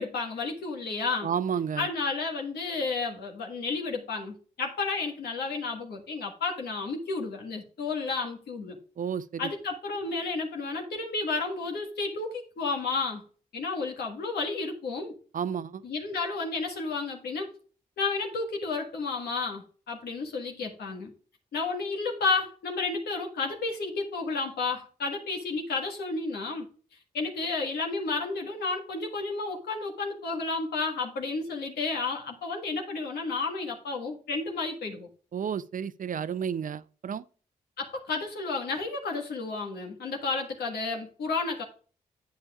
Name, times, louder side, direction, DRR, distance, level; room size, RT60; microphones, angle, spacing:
voice 1, 0.0-1.3 1.8-8.8 9.4-13.2 13.5-15.1 15.8-17.5 18.0-21.1 21.5-26.7 27.1-35.1 37.8-41.6, left 3 dB, 85° left, 1.5 m, -32 dB
voice 2, 1.2-1.9 9.0-9.5 15.3-15.8 35.3-37.2, right 7 dB, 55° right, 0.5 m, -31 dB
8.5 x 7.1 x 2.4 m
supercardioid pair, 45°, 17 cm